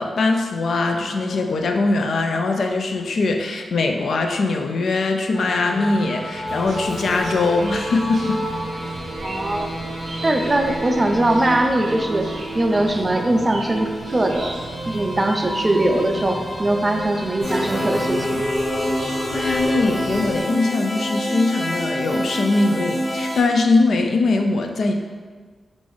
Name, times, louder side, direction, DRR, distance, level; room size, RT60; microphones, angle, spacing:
voice 1, 0.0-8.4 19.3-24.9, left 3 dB, 75° left, 4 dB, 0.3 m, -21 dB
sound 1, 5.3-17.9, right 1 dB, 5° left, 0.9 m, -31 dB
Chirp tweet, 6.5-20.4, right 2 dB, 90° right, 0.6 m, -38 dB
voice 2, 9.2-9.7 10.2-12.3 12.5-14.6 14.9-18.4, right 1 dB, 25° right, 4 dB, 0.3 m, -21 dB
sound 2, 17.4-23.4, equal, 35° left, 1.3 m, -25 dB
3.6 x 2.5 x 3.1 m, 1.5 s
wide cardioid pair, 90°, 0 cm